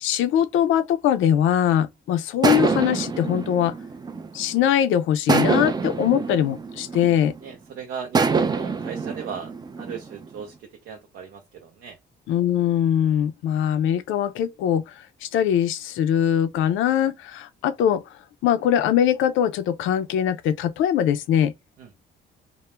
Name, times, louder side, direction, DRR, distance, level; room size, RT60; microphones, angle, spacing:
voice 1, 0.0-3.7 4.3-7.3 12.3-14.9 15.2-18.0 18.4-21.5, left 10 dB, 80° left, 0.4 m, -22 dB
sound 1, 2.4-4.7 5.3-7.5 8.2-10.4, right 4 dB, 20° right, 0.4 m, -25 dB
voice 2, 7.4-12.0 21.8-21.9, right 7 dB, 80° right, 0.5 m, -37 dB
2.2 x 2.0 x 2.9 m
cardioid pair, 90°, 20 cm